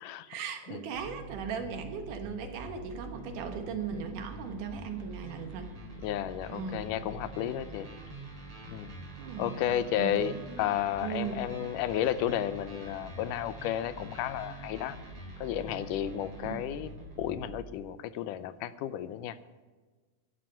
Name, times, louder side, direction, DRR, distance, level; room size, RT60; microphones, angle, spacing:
voice 1, 0.3-5.7 6.5-6.8 9.2-11.4 16.4-16.6, right 6 dB, 80° right, 5 dB, 2.9 m, -38 dB
sound 1, 0.9-17.7, right 2 dB, 45° right, 4.8 m, -45 dB
voice 2, 6.0-7.9 8.7-8.9 9.4-15.0 15.4-16.9 17.2-19.4, left 11 dB, 90° left, 13 dB, 2.3 m, -32 dB
14.0 x 11.5 x 5.7 m, 1.4 s
omnidirectional pair, 3.6 m